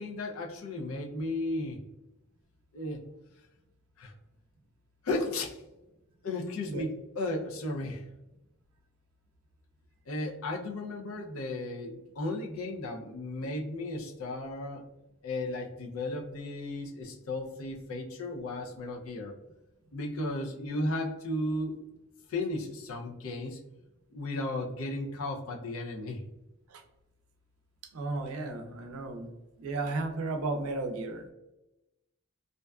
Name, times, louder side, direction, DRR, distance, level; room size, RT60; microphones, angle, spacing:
voice 1, 0.0-1.8 2.7-3.0 4.0-4.1 5.0-5.6 6.2-8.0 10.1-14.8 15.2-19.3 19.9-21.8 22.3-23.6 24.1-26.2, left 2 dB, 85° left, 0 dB, 0.5 m, -35 dB
voice 2, 27.9-29.3 29.6-31.2, right 3 dB, 85° right, 6 dB, 0.4 m, -33 dB
2.5 x 2.2 x 2.2 m, 0.97 s
head